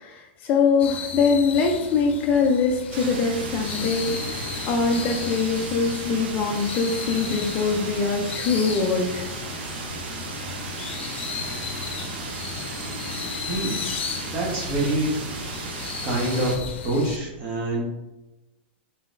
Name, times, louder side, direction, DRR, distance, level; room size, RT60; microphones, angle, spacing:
voice 1, 0.0-9.3, left 4 dB, 25° left, 2 dB, 0.4 m, -23 dB
sound 1, 0.8-17.2, left 6 dB, 85° left, 0.5 m, -36 dB
sound 2, 2.9-16.6, right 2 dB, 65° right, 0.7 m, -34 dB
voice 2, 13.4-13.8 14.3-15.3 16.0-17.8, right 1 dB, 30° right, -3 dB, 1.1 m, -26 dB
3.9 x 3.8 x 2.5 m, 1.0 s
supercardioid pair, 165°, 6 cm